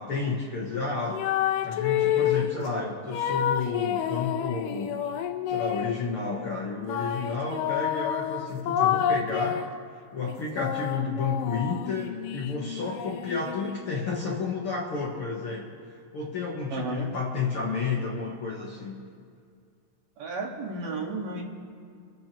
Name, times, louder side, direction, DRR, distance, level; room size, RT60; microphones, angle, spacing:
voice 1, 0.0-5.0 5.5-9.6 10.1-19.0, left 4 dB, 55° left, -3 dB, 1.5 m, -31 dB
sound 1, 1.1-2.6 3.1-6.0 6.9-9.8 10.3-13.9, left 9 dB, 80° left, 2.2 m, -29 dB
voice 2, 16.7-17.1 20.2-21.4, right 3 dB, 70° right, -1 dB, 3.4 m, -33 dB
25.5 x 15.0 x 3.0 m, 2.3 s
omnidirectional pair, 4.0 m